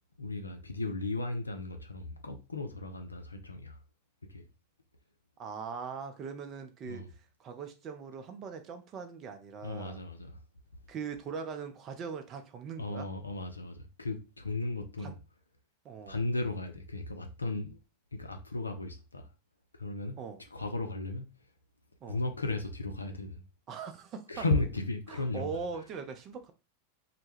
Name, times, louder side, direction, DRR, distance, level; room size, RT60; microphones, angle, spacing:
voice 1, 0.2-3.8 4.3-4.5 6.8-7.1 9.6-10.4 12.8-15.1 16.1-17.8 18.1-19.3 19.7-20.2 20.5-21.3 22.1-23.4 24.3-25.6, left 2 dB, 80° left, 0.4 m, -35 dB
voice 2, 5.4-7.0 7.4-10.0 10.9-13.1 15.0-15.1 15.8-16.2 20.2-20.4 22.0-22.2 23.7-24.4 25.1-26.5, right 6 dB, 30° right, 0.4 m, -41 dB
2.1 x 2.0 x 3.1 m
figure-of-eight pair, 90°, 0 cm